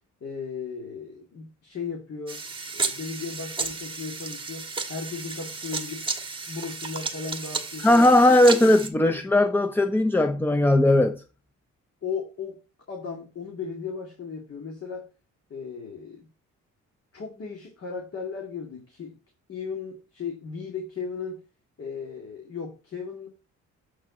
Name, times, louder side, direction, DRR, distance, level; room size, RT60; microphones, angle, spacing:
voice 1, 0.2-2.4 2.7-6.0 6.5-8.1 8.5-8.7 12.0-12.6 12.9-15.1 15.5-16.3 17.1-19.2 19.5-21.4 21.8-23.3, left 5 dB, 50° left, 2.2 m, -36 dB
sound 1, 2.3-8.9, right 4 dB, 15° right, 1.6 m, -33 dB
voice 2, 7.8-11.2, left 1 dB, 5° left, 0.5 m, -18 dB
7.7 x 4.5 x 4.1 m
cardioid pair, 90°, 30 cm